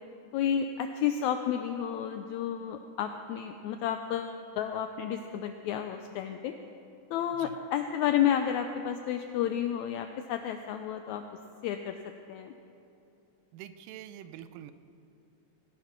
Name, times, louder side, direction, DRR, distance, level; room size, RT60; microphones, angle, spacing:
voice 1, 0.3-6.5 7.1-11.2 11.6-12.0 12.3-12.5, left 9 dB, 90° left, 7 dB, 1.6 m, -31 dB
voice 2, 13.5-14.7, right 11 dB, 90° right, 11 dB, 2.3 m, -46 dB
17.5 x 10.5 x 5.8 m, 2.8 s
omnidirectional pair, 3.8 m